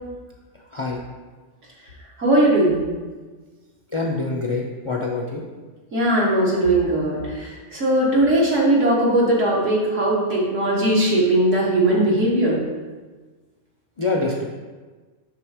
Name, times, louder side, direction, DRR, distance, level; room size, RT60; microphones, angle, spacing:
voice 1, 2.2-2.9 5.9-12.6, right 1 dB, 75° right, -4 dB, 1.8 m, -19 dB
voice 2, 3.9-5.4 14.0-14.4, left 3 dB, 50° left, -1 dB, 0.3 m, -25 dB
6.1 x 3.5 x 4.8 m, 1.3 s
omnidirectional pair, 1.3 m